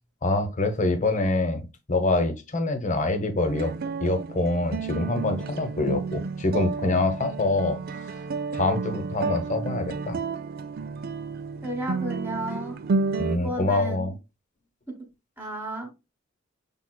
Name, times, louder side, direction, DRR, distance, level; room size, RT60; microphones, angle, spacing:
voice 1, 0.2-3.7 4.0-7.8 8.5-10.2 13.2-14.1, left 2 dB, 40° left, 0.9 m, -25 dB
sound 1, 3.4-13.4, right 4 dB, 50° right, 0.4 m, -31 dB
voice 2, 11.6-12.8 13.3-14.1 14.9-15.0 15.4-15.9, right 1 dB, 10° right, 1.3 m, -33 dB
5.9 x 3.5 x 2.2 m
head